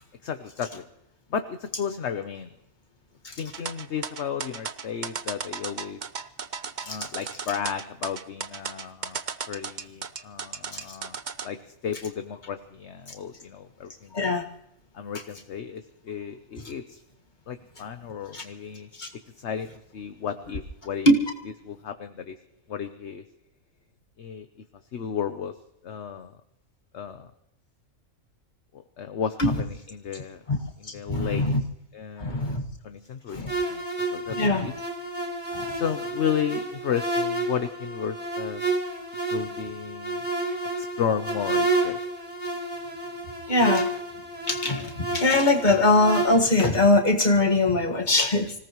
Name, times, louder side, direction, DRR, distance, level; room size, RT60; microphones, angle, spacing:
voice 1, 0.2-0.8 1.3-2.5 3.4-6.0 6.9-9.2 9.5-11.2 11.4-11.6 11.8-14.3 14.9-17.0 17.5-18.9 19.4-21.1 21.6-22.4 22.7-23.2 24.2-24.5 24.9-25.6 25.8-26.4 26.9-27.3 28.7-30.4 30.8-31.4 31.9-33.8 34.1-34.7 35.7-38.6 39.3-40.2 40.8-42.0, left 7 dB, 55° left, 8 dB, 1.1 m, -33 dB
sound 1, 3.5-11.5, right 6 dB, 40° right, 0.7 m, -35 dB
voice 2, 14.1-14.5 18.3-18.4 19.0-19.1 21.1-21.2 29.4-29.5 30.5-30.6 31.1-31.6 32.2-32.6 33.3-33.5 34.4-34.7 35.5-35.7 43.5-43.9 44.5-48.5, left 2 dB, 35° left, 2 dB, 1.9 m, -21 dB
sound 2, 33.5-46.3, right 2 dB, 5° right, 4.8 m, -30 dB
26.0 x 17.5 x 3.1 m, 0.81 s
omnidirectional pair, 1.5 m